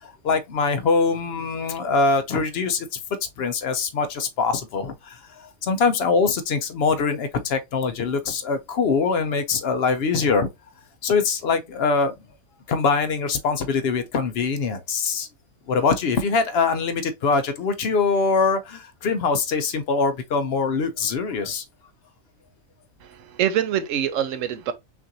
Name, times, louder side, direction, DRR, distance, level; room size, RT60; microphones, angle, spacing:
voice 1, 0.0-3.0 3.4-10.5 11.0-12.1 12.7-15.3 15.7-21.6, left 4 dB, 60° left, 0.8 m, -23 dB
voice 2, 23.0-24.7, right 10 dB, 75° right, 1.0 m, -25 dB
5.8 x 2.5 x 2.7 m
omnidirectional pair, 1.4 m